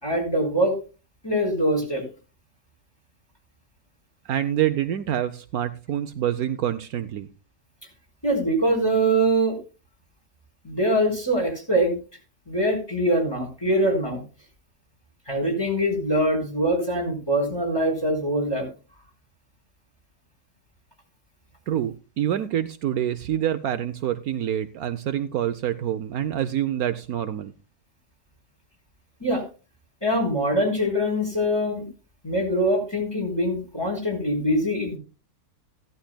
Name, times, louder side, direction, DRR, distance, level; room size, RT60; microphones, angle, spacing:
voice 1, 0.0-0.7 1.2-2.0 8.2-9.6 10.6-12.0 12.5-14.2 15.3-18.7 29.2-29.4 30.0-31.8 32.2-35.0, right 1 dB, 15° left, -2 dB, 4.4 m, -23 dB
voice 2, 4.3-7.3 21.7-27.5, right 11 dB, 70° right, 11 dB, 1.1 m, -26 dB
16.0 x 11.5 x 2.2 m, 0.33 s
omnidirectional pair, 1.7 m